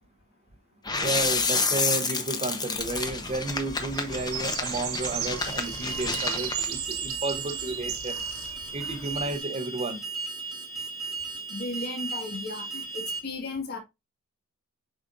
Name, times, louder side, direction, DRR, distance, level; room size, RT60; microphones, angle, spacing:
sound 1, 0.8-6.7, left 4 dB, 20° left, 0.8 m, -29 dB
voice 1, 1.0-8.2 8.7-10.0, right 2 dB, 30° right, 0.8 m, -32 dB
sound 2, 2.7-9.4, right 9 dB, 65° right, 1.1 m, -37 dB
Alarm, 5.4-13.2, right 4 dB, ahead, 1.8 m, -36 dB
voice 2, 11.5-13.8, left 2 dB, 45° left, 1.7 m, -35 dB
7.3 x 5.1 x 2.5 m
head